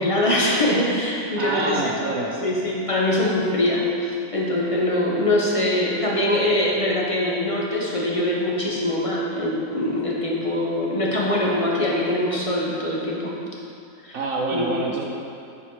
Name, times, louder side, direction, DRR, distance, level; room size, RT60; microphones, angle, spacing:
voice 1, 0.0-13.4 14.0-14.2 14.5-14.7, left 1 dB, 25° left, -4 dB, 1.1 m, -23 dB
voice 2, 1.4-2.3 14.1-15.1, right 3 dB, 70° right, -1 dB, 1.1 m, -26 dB
8.6 x 4.8 x 5.0 m, 2.5 s
omnidirectional pair, 1.5 m